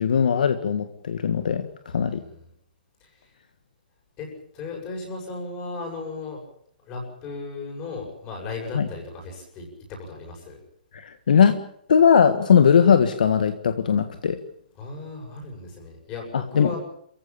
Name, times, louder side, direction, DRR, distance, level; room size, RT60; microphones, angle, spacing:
voice 1, 0.0-2.2 8.7-8.9 10.9-11.6 11.9-14.4 16.5-16.8, left 7 dB, 60° left, 9 dB, 1.7 m, -19 dB
voice 2, 1.9-2.5 3.0-3.3 4.2-4.3 4.5-6.4 6.8-10.6 14.8-16.8, left 3 dB, 15° left, 1 dB, 7.2 m, -36 dB
28.0 x 15.5 x 8.9 m, 0.70 s
hypercardioid pair, 175°, 5 cm